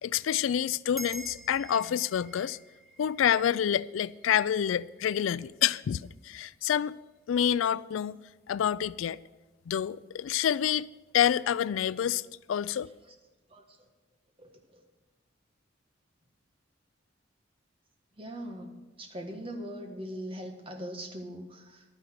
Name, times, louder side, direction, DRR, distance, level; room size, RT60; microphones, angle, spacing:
voice 1, 0.0-2.6 3.0-7.0 7.3-8.2 8.5-9.2 9.7-12.2 12.5-12.9, left 9 dB, 85° left, 0.3 m, -28 dB
sound 1, 1.0-5.7, equal, ahead, 0.4 m, -47 dB
voice 2, 14.4-14.8 18.2-18.7 19.0-21.8, equal, 25° right, 1.5 m, -41 dB
11.5 x 9.7 x 6.4 m
head